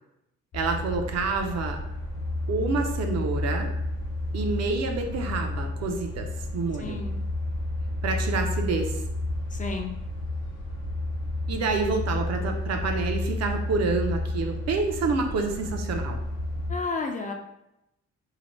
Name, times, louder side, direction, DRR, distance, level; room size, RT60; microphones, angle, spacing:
sound 1, 0.5-16.7, left 1 dB, 55° left, 0.9 m, -31 dB
voice 1, 0.5-1.8 2.5-3.7 4.3-6.3 6.5-7.0 8.0-9.0 11.5-16.2, right 4 dB, 60° right, 3 dB, 0.6 m, -28 dB
voice 2, 6.8-7.2 9.5-9.9 16.7-17.3, left 4 dB, 25° left, 2 dB, 0.4 m, -31 dB
2.8 x 2.1 x 3.0 m, 0.86 s
cardioid pair, 90°, 30 cm